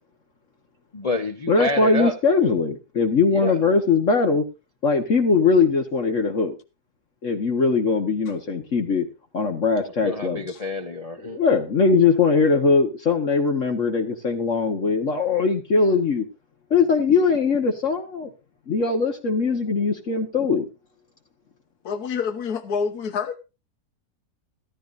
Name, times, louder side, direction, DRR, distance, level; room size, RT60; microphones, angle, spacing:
voice 1, 0.9-2.2 3.3-3.6 10.0-11.4, left 2 dB, 30° left, 0.8 m, -28 dB
voice 2, 1.5-4.4 4.8-6.6 7.2-9.1 9.3-10.4 11.3-16.3 16.7-18.3 18.7-20.7, left 4 dB, 55° left, 1.7 m, -21 dB
voice 3, 21.8-23.4, left 6 dB, 80° left, 1.6 m, -27 dB
15.0 x 13.5 x 2.6 m
omnidirectional pair, 1.6 m